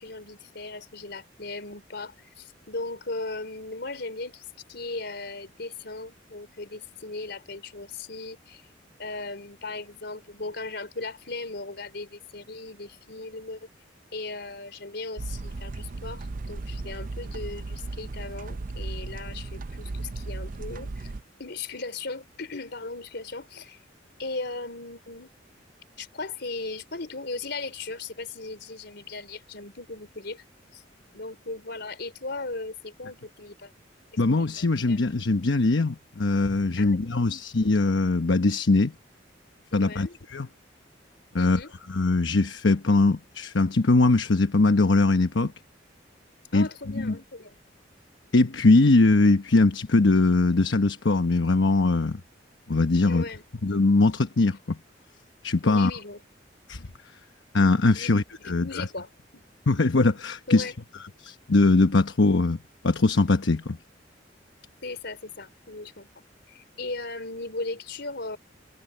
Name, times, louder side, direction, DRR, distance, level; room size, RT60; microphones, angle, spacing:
voice 1, 0.0-8.6 9.0-13.7 14.1-21.1 21.4-23.8 24.2-25.3 26.0-30.4 30.7-30.8 31.1-33.7 34.1-35.0 36.8-37.3 39.7-40.2 41.4-41.7 46.5-47.6 53.0-53.4 55.6-56.2 57.9-58.1 58.4-59.4 60.5-60.8 64.8-68.4, left 3 dB, 65° left, 4.1 m, -37 dB
sound 1, 15.2-21.2, right 3 dB, 45° right, 0.5 m, -36 dB
voice 2, 34.2-38.9 39.7-40.1 40.3-40.5 41.3-41.6 41.9-45.5 46.5-46.7 46.9-47.1 48.3-52.2 52.7-53.2 53.6-54.8 55.4-55.9 56.7-56.8 57.5-58.8 59.7-60.7 61.2-62.6 62.8-63.8, left 3 dB, 80° left, 1.0 m, -21 dB
head